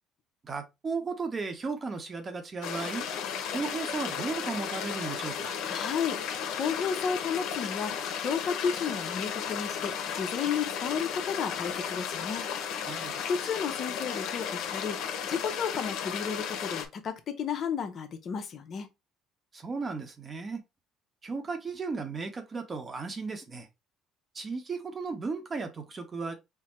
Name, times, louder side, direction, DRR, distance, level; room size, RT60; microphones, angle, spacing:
voice 1, 0.4-3.0 3.5-5.6 12.9-13.2 19.5-20.6 21.2-23.7 24.3-26.3, right 4 dB, 30° right, 1.0 m, -35 dB
sound 1, 2.6-16.9, left 8 dB, 75° left, 0.9 m, -34 dB
voice 2, 5.7-12.5 13.3-15.0 15.2-18.9, left 6 dB, 50° left, 0.8 m, -33 dB
4.5 x 2.2 x 4.3 m
cardioid pair, 120°, 0 cm